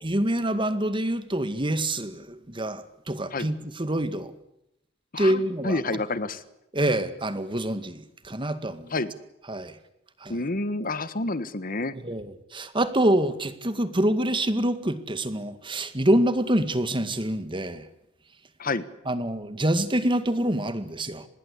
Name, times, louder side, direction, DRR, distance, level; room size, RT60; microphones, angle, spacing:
voice 1, 0.0-4.3 5.2-5.8 6.7-8.9 9.5-9.8 10.2-10.4 11.9-17.9 19.1-21.3, right 1 dB, 25° right, 11 dB, 2.0 m, -26 dB
voice 2, 5.1-6.4 8.9-9.1 10.3-11.9 18.6-18.8, left 2 dB, 50° left, 15 dB, 1.4 m, -29 dB
26.0 x 20.5 x 8.4 m, 0.82 s
head